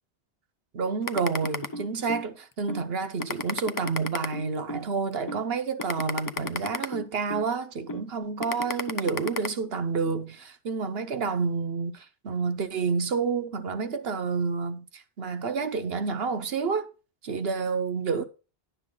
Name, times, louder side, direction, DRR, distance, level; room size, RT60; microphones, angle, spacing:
voice 1, 0.7-16.9 17.2-18.2, right 5 dB, 70° right, 1.1 m, -29 dB
sound 1, 1.1-2.2 2.7-2.8 3.2-4.8 5.3-5.4 5.8-7.4 7.9-8.0 8.4-9.5, left 3 dB, 30° left, 0.4 m, -32 dB
10.5 x 6.9 x 3.8 m
omnidirectional pair, 1.0 m